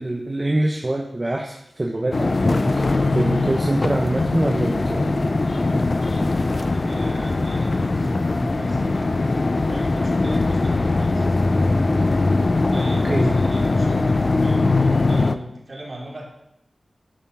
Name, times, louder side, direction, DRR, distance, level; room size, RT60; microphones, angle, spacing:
voice 1, 0.0-5.1 13.0-13.3, right 1 dB, 35° right, 0 dB, 1.1 m, -24 dB
sound 1, 2.1-15.4, left 3 dB, 55° left, 0.6 m, -21 dB
voice 2, 6.3-9.1 9.6-11.2 12.5-16.3, right 1 dB, 55° right, -2 dB, 3.1 m, -37 dB
11.5 x 5.6 x 5.8 m, 0.81 s
cardioid pair, 45°, 0 cm